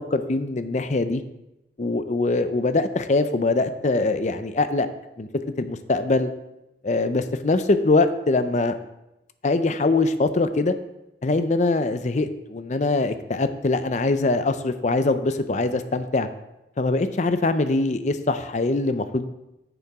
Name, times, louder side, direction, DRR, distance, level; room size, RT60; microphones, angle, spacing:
voice 1, 0.1-1.2 1.8-4.9 5.2-5.3 5.6-6.3 6.8-8.7 9.4-10.7 11.2-16.3 16.8-19.3, left 3 dB, 40° left, 10 dB, 0.5 m, -23 dB
9.7 x 7.0 x 3.5 m, 0.92 s
head